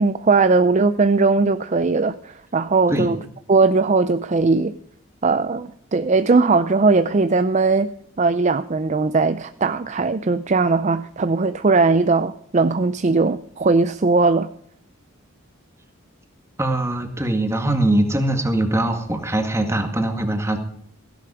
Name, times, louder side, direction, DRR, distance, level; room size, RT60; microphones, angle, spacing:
voice 1, 0.0-3.2 3.5-4.7 5.2-7.9 8.2-14.5, right 3 dB, 35° right, 0.4 m, -19 dB
voice 2, 16.6-20.6, right 1 dB, 15° right, 1.8 m, -22 dB
16.5 x 11.0 x 4.9 m
head